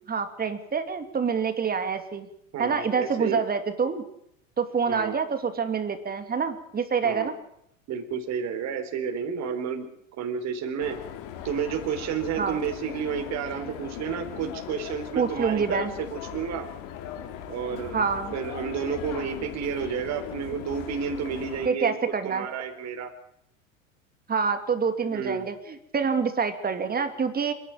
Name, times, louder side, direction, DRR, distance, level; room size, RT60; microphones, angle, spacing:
voice 1, 0.1-2.3 2.6-4.0 4.6-7.3 12.4-12.6 15.2-15.9 17.9-18.4 21.6-22.5 24.3-27.5, right 5 dB, 25° right, 9 dB, 2.7 m, -26 dB
voice 2, 2.5-3.4 4.9-5.2 7.0-7.3 7.9-9.9 10.2-11.0 11.4-16.7 17.4-18.0 18.3-21.9 22.2-23.1 25.1-25.5, right 7 dB, 40° right, 5 dB, 3.8 m, -31 dB
sound 1, 10.8-21.7, left 10 dB, 50° left, 3.0 m, -39 dB
28.0 x 11.5 x 9.0 m, 0.75 s
hypercardioid pair, 85°, 40 cm